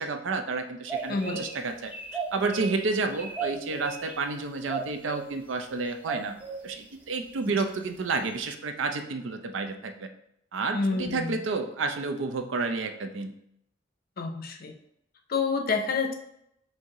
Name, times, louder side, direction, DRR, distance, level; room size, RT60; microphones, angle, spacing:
voice 1, 0.0-1.9 2.3-6.4 6.6-10.1 10.5-13.4, right 3 dB, 85° right, 6 dB, 0.5 m, -30 dB
sound 1, 0.9-1.6 1.9-2.8 3.1-4.1 4.7-5.2 6.1-6.6, right 5 dB, 10° right, 0.6 m, -34 dB
voice 2, 1.1-1.4 10.7-11.4 14.2-14.7 15.3-16.1, left 4 dB, 50° left, 5 dB, 0.5 m, -28 dB
4.5 x 2.7 x 3.7 m, 0.74 s
head